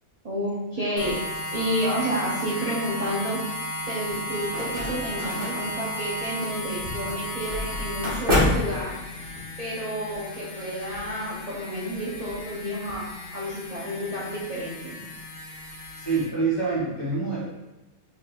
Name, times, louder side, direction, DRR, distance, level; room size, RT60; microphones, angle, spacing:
voice 1, 0.2-1.2 1.5-9.0 9.6-15.0, equal, 60° right, -8 dB, 0.4 m, -30 dB
sound 1, 1.0-16.3, left 1 dB, 80° left, 1.3 m, -35 dB
sound 2, 4.1-9.4, left 1 dB, 40° right, 1.0 m, -29 dB
voice 2, 16.0-17.5, right 4 dB, 20° left, -10 dB, 1.1 m, -26 dB
3.8 x 3.7 x 2.3 m, 1.0 s
omnidirectional pair, 1.6 m